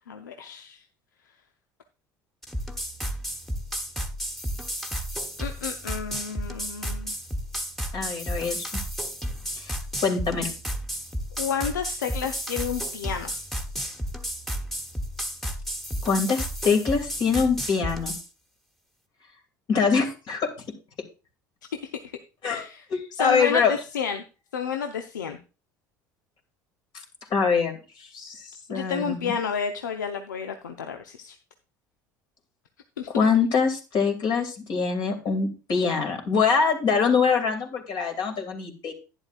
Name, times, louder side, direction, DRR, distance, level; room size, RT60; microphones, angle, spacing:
voice 1, 0.1-0.8 5.4-7.1 11.4-13.4 22.5-22.8 23.1-24.2 24.5-25.4 28.7-31.4 33.0-33.1, left 7 dB, 85° left, 6 dB, 0.7 m, -31 dB
sound 1, 2.4-18.3, equal, ahead, 1.3 m, -32 dB
voice 2, 7.9-8.8 9.6-9.8 10.0-10.5 16.0-18.1 19.7-20.5 22.4-23.7 27.3-29.3 33.1-38.9, left 5 dB, 50° left, 3 dB, 2.5 m, -24 dB
11.0 x 9.9 x 2.5 m, 0.32 s
hypercardioid pair, 65°, 10 cm